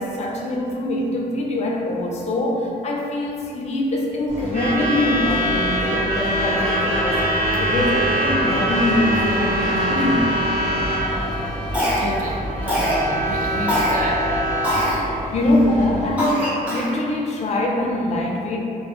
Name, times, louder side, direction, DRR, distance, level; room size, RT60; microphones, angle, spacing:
voice 1, 0.0-7.3 7.6-10.3 15.3-18.6, left 1 dB, 45° left, 0 dB, 0.4 m, -23 dB
Truck / Alarm, 4.3-16.2, equal, 40° right, 0.8 m, -23 dB
voice 2, 11.2-14.3, right 2 dB, 60° right, -3 dB, 0.4 m, -32 dB
Cough, 11.7-12.3 12.7-13.0 13.7-13.9 14.6-15.0 15.5-15.6 16.2-17.0, equal, 10° right, 0.8 m, -23 dB
2.1 x 2.0 x 2.9 m, 2.6 s
cardioid pair, 105°, 16 cm